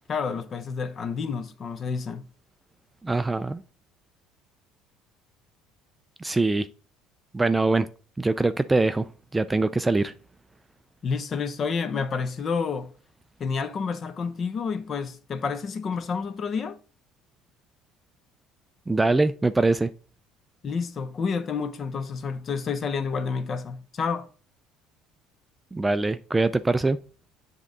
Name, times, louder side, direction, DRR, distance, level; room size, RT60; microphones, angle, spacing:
voice 1, 0.1-2.3 11.0-12.9 13.4-16.8 20.6-24.3, left 5 dB, 40° left, 0.6 m, -29 dB
voice 2, 3.0-3.6 6.2-6.7 7.3-7.9 8.2-9.1 9.3-10.1 18.9-19.9 25.7-27.0, right 3 dB, 15° right, 0.3 m, -23 dB
7.3 x 3.7 x 3.9 m
cardioid pair, 115°, 0 cm